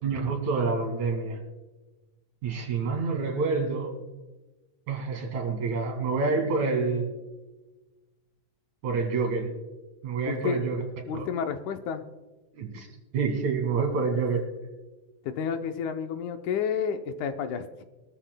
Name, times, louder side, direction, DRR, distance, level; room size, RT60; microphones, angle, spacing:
voice 1, 0.0-1.4 2.4-4.0 4.9-7.1 8.8-9.6 10.0-10.8 11.1-11.3 12.5-12.9 13.1-14.5, right 4 dB, 65° right, 2 dB, 3.5 m, -27 dB
voice 2, 10.2-10.6 11.1-12.1 15.2-17.6, left 7 dB, 75° left, 7 dB, 2.1 m, -30 dB
22.0 x 13.0 x 2.2 m, 1.2 s
omnidirectional pair, 3.7 m